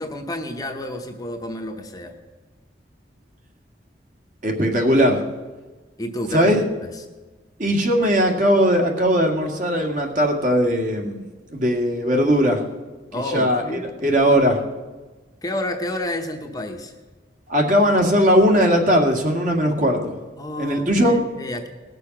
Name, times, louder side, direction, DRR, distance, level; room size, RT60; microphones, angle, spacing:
voice 1, 0.0-2.2 6.0-7.0 13.1-13.9 15.4-16.9 20.4-21.7, left 1 dB, 20° left, 4 dB, 0.9 m, -30 dB
voice 2, 4.4-5.2 6.3-6.6 7.6-11.2 11.5-12.6 13.3-13.6 14.0-14.6 17.5-20.2 20.6-21.2, equal, 45° right, 2 dB, 1.9 m, -18 dB
19.0 x 6.8 x 6.0 m, 1.2 s
head